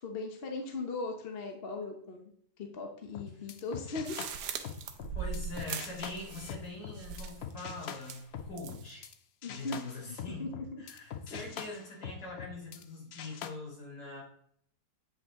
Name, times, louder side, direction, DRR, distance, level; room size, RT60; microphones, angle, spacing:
voice 1, 0.0-2.3 2.6-4.5 9.4-10.8 11.3-11.4, left 3 dB, 40° left, 3 dB, 1.0 m, -39 dB
sound 1, 3.1-9.1 9.4-12.8 13.1-13.5, left 8 dB, 90° left, 0.5 m, -44 dB
sound 2, 4.0-6.7 6.9-7.5 8.0-8.9, right 6 dB, 75° right, 1.3 m, -40 dB
voice 2, 5.1-9.1 9.5-10.5 10.8-14.2, left 2 dB, 60° left, -4 dB, 3.1 m, -43 dB
8.4 x 5.5 x 3.6 m, 0.65 s
omnidirectional pair, 1.8 m